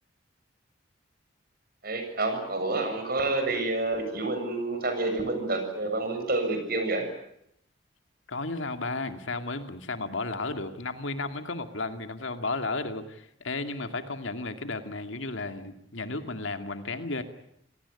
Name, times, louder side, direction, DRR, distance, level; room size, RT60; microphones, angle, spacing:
voice 1, 1.8-7.1, right 2 dB, 45° right, 6 dB, 7.3 m, -28 dB
voice 2, 8.3-17.2, left 3 dB, 75° left, 8 dB, 2.3 m, -33 dB
27.5 x 18.5 x 9.8 m, 0.76 s
head